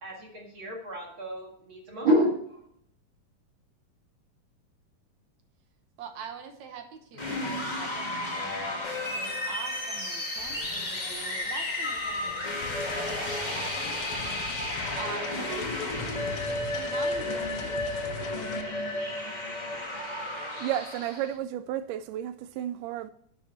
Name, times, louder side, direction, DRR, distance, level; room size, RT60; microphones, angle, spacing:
voice 1, 0.0-2.6, equal, 45° right, 2.2 m, -28 dB
voice 2, 6.0-18.0, right 6 dB, 65° right, 2.1 m, -44 dB
sound 1, 7.1-21.3, left 1 dB, 25° left, 1.0 m, -33 dB
Wind, 10.3-18.1, left 6 dB, 65° left, 1.8 m, -47 dB
sound 2, 12.6-18.6, left 7 dB, 85° left, 2.7 m, -41 dB
voice 3, 20.6-23.1, right 11 dB, 80° right, 2.0 m, -32 dB
11.0 x 7.8 x 4.2 m
omnidirectional pair, 4.0 m